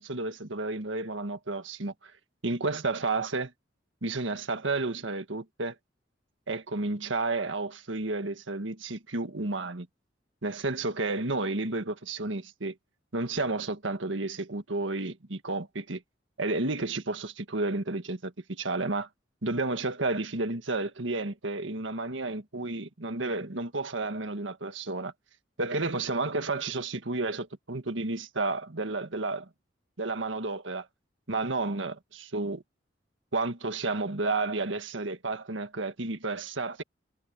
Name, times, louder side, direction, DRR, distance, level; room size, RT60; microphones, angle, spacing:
voice 1, 0.0-2.1 2.4-3.5 4.0-5.7 6.5-9.9 10.4-12.7 13.1-16.0 16.4-19.1 19.4-25.1 25.6-29.5 30.0-30.9 31.3-32.6 33.3-36.8, right 3 dB, 90° right, 1.7 m, -31 dB
head